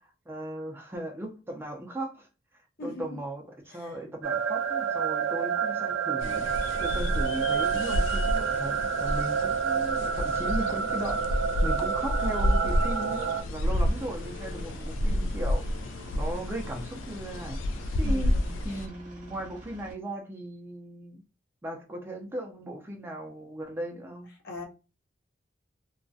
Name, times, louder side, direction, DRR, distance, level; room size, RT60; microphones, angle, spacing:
voice 1, 0.3-2.3 2.8-6.5 6.8-15.7 16.1-17.6 18.0-18.4 18.6-21.2 21.6-24.3, right 1 dB, 10° right, 0.4 m, -37 dB
sound 1, 4.2-13.4, right 6 dB, 80° right, 0.3 m, -29 dB
sound 2, 6.2-18.9, left 1 dB, 90° left, 0.3 m, -30 dB
Aircraft, 13.6-19.9, right 1 dB, 40° right, 0.8 m, -48 dB
voice 2, 18.0-18.5 24.4-24.6, left 2 dB, 55° left, 0.6 m, -39 dB
2.3 x 2.1 x 2.5 m
head